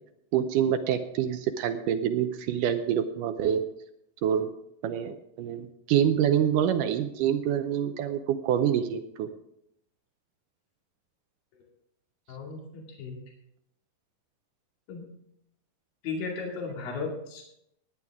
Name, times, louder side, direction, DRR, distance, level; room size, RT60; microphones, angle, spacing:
voice 1, 0.3-3.6 4.2-4.5 4.8-9.3, right 9 dB, 75° right, 8 dB, 2.1 m, -26 dB
voice 2, 12.3-13.2 14.9-15.1 16.0-17.4, left 4 dB, 80° left, -1 dB, 4.1 m, -35 dB
18.0 x 10.0 x 3.6 m, 0.76 s
omnidirectional pair, 4.0 m